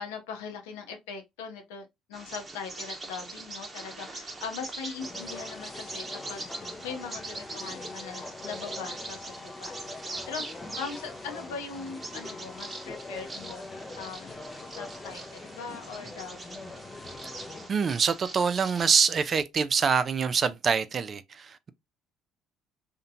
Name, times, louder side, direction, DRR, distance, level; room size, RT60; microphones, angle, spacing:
voice 1, 0.0-10.4 10.8-13.7 14.0-16.7, left 5 dB, 85° left, 0.6 m, -41 dB
Bird vocalization bird call bird song, 2.1-19.0, right 2 dB, 25° right, 0.8 m, -42 dB
sound 1, 5.0-17.7, left 3 dB, 30° left, 0.4 m, -43 dB
voice 2, 17.7-21.7, right 6 dB, 45° right, 0.3 m, -25 dB
2.7 x 2.1 x 2.6 m
supercardioid pair, 70°, 0 cm